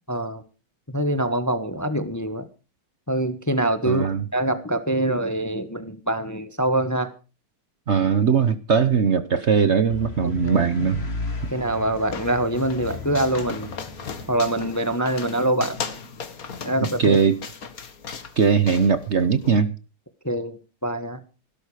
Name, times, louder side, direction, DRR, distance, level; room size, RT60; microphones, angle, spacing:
voice 1, 0.1-0.4 0.9-2.5 3.1-7.1 10.2-10.6 11.5-13.7 14.3-15.8 16.6-17.2 20.2-21.2, right 1 dB, 15° left, 0.8 m, -24 dB
voice 2, 3.9-4.2 7.9-11.1 17.0-17.4 18.4-19.7, right 6 dB, 55° right, 0.7 m, -20 dB
sound 1, 9.9-14.5, left 3 dB, 30° left, 2.3 m, -35 dB
sound 2, 11.4-19.5, left 5 dB, 45° left, 1.8 m, -37 dB
17.0 x 12.0 x 4.9 m
omnidirectional pair, 2.3 m